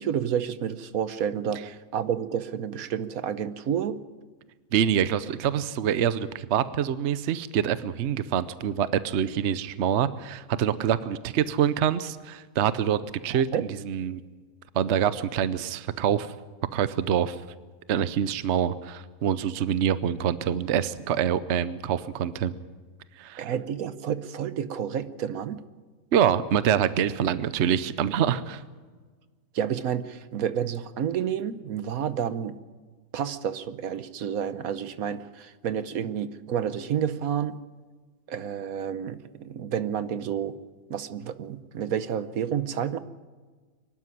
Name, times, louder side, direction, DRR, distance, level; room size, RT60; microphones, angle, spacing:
voice 1, 0.0-4.0 13.3-13.6 23.4-25.6 29.5-32.6 33.1-37.6 38.3-40.6 40.9-43.0, right 8 dB, 75° right, 13 dB, 1.3 m, -30 dB
voice 2, 4.7-14.2 14.7-16.3 16.7-17.4 17.9-22.5 23.2-23.5 26.1-28.6, right 9 dB, 55° right, 14 dB, 1.0 m, -25 dB
24.0 x 12.0 x 9.9 m, 1.4 s
omnidirectional pair, 1.5 m